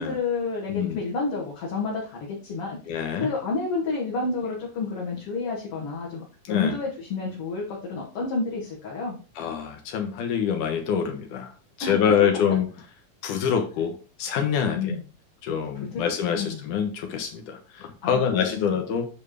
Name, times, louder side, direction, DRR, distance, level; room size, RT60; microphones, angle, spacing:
voice 1, 0.0-2.8 3.1-9.2 11.8-12.0 14.7-15.0 15.9-16.1 16.3-16.6 18.0-18.8, left 4 dB, 50° left, -5 dB, 2.3 m, -30 dB
voice 2, 0.7-1.0 2.9-3.3 6.5-6.8 9.4-11.5 11.8-12.7 13.2-15.0 15.4-19.1, left 7 dB, 70° left, 5 dB, 2.6 m, -25 dB
9.0 x 3.6 x 5.0 m, 0.35 s
omnidirectional pair, 4.0 m